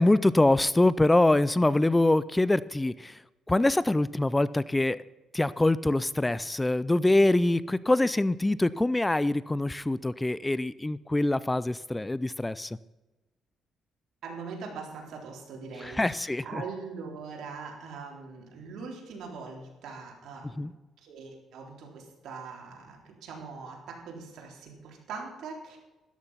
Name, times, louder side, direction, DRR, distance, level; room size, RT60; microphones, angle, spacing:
voice 1, 0.0-3.2 3.5-5.0 5.3-12.8 15.8-16.4 20.6-20.7, left 2 dB, 15° left, 18 dB, 0.4 m, -24 dB
voice 2, 14.2-20.7 21.0-25.8, right 4 dB, 75° right, 0 dB, 3.8 m, -42 dB
13.5 x 12.0 x 5.7 m, 1.1 s
cardioid pair, 90°, 0 cm